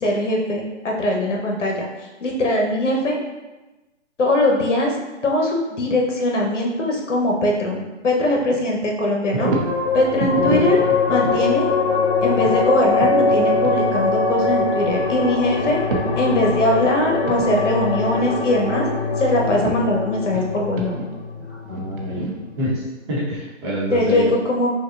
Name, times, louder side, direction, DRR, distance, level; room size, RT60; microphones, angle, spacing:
voice 1, 0.0-3.2 4.2-5.0 5.2-9.5 9.9-11.7 12.2-15.8 16.1-18.9 19.2-21.0 23.9-24.7, left 1 dB, 75° left, 0 dB, 1.0 m, -21 dB
sound 1, 9.3-9.8 10.2-11.4 12.4-13.4 13.6-13.8 14.5-15.3 15.6-17.0 17.3-17.5 17.8-18.8 19.3-19.7 20.1-22.8, right 3 dB, 50° right, 0.8 m, -29 dB
sound 2, 9.4-22.2, left 4 dB, 55° left, 0.6 m, -22 dB
voice 2, 21.5-22.3 22.6-24.3, equal, 25° right, -7 dB, 0.9 m, -26 dB
5.6 x 2.3 x 2.5 m, 1.1 s
hypercardioid pair, 150°, 37 cm